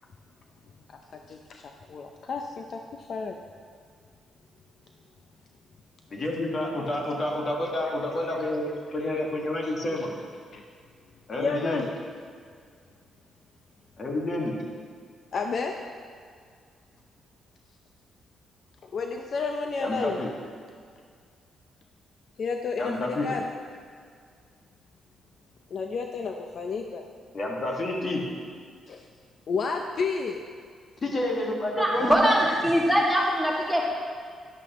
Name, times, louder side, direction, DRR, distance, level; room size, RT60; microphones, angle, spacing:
voice 1, 0.9-3.4 9.0-9.1 9.6-10.0 10.5-10.6 11.4-11.9 15.3-15.8 18.8-20.2 22.4-23.4 25.7-27.0 28.9-29.0 29.5-30.4, left 4 dB, 55° left, 4 dB, 0.6 m, -31 dB
voice 2, 6.1-10.1 11.3-11.8 14.0-14.6 19.8-20.3 22.8-23.3 27.3-28.3 31.0-32.1, left 1 dB, 40° left, -1 dB, 1.8 m, -29 dB
voice 3, 31.8-33.9, equal, 5° left, -4 dB, 2.1 m, -22 dB
11.5 x 10.5 x 3.1 m, 2.1 s
cardioid pair, 105°, 0 cm